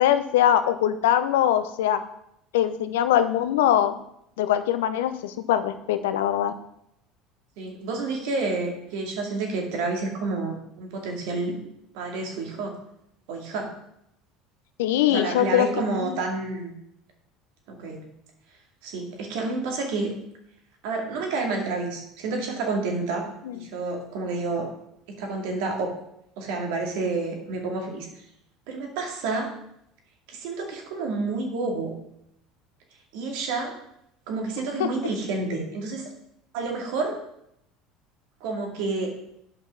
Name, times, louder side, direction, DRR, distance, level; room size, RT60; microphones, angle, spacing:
voice 1, 0.0-2.0 2.5-4.0 4.4-6.5 14.8-15.7 16.0-16.2 23.5-23.6 34.8-34.9, left 11 dB, 85° left, 11 dB, 0.7 m, -22 dB
voice 2, 7.6-11.6 11.9-12.8 13.3-13.7 15.1-16.7 17.7-18.0 18.8-20.1 20.8-23.3 23.5-24.7 25.1-25.9 26.4-28.1 28.7-29.5 30.3-31.9 33.1-33.7 34.3-36.1 36.5-37.2 38.4-39.1, right 3 dB, 75° right, 2 dB, 2.4 m, -29 dB
8.6 x 5.6 x 6.1 m, 0.77 s
hypercardioid pair, 80°, 0 cm